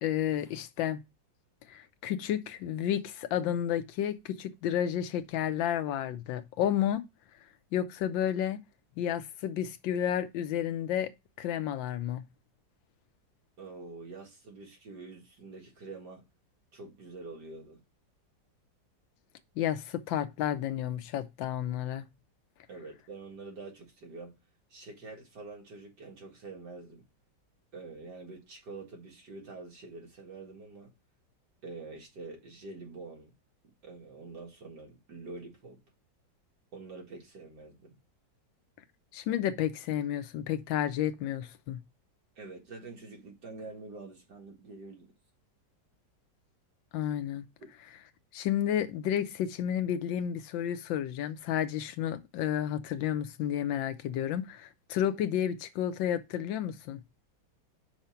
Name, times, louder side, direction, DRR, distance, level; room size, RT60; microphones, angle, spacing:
voice 1, 0.0-1.0 1.7-7.0 7.7-8.6 9.0-11.1 11.4-12.2 19.6-22.1 39.1-41.8 46.9-47.5 48.3-57.0, left 10 dB, 85° left, 1.5 m, -31 dB
voice 2, 13.6-16.2 16.7-17.8 22.7-24.3 24.7-27.1 27.7-30.9 31.6-33.3 33.8-35.8 36.7-38.0 42.4-45.1, right 3 dB, 65° right, 2.4 m, -46 dB
5.7 x 4.3 x 5.7 m
omnidirectional pair, 2.0 m